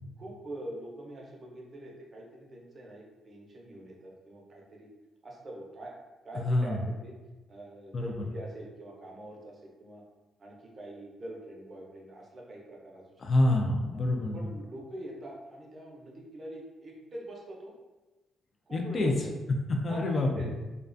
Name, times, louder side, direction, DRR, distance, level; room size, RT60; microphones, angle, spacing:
voice 1, 0.2-4.9 5.2-5.9 6.2-7.1 7.5-10.0 10.4-13.0 13.9-14.0 14.3-17.7 18.7-19.1 19.9-20.5, right 1 dB, 35° right, -2 dB, 0.5 m, -44 dB
voice 2, 6.3-6.8 7.9-8.3 13.2-14.5 18.7-19.1 19.7-20.5, left 2 dB, 35° left, 2 dB, 0.3 m, -27 dB
2.3 x 2.2 x 2.5 m, 1.1 s
cardioid pair, 135°, 0 cm